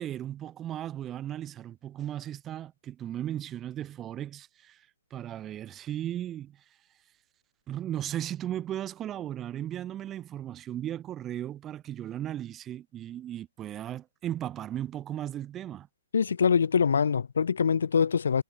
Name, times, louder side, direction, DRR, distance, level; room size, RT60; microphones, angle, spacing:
voice 1, 0.0-4.8 5.1-6.6 7.7-15.9, right 11 dB, 10° right, 4.8 m, -36 dB
voice 2, 16.1-18.4, left 6 dB, 90° left, 2.7 m, -24 dB
hypercardioid pair, 180°, 0 cm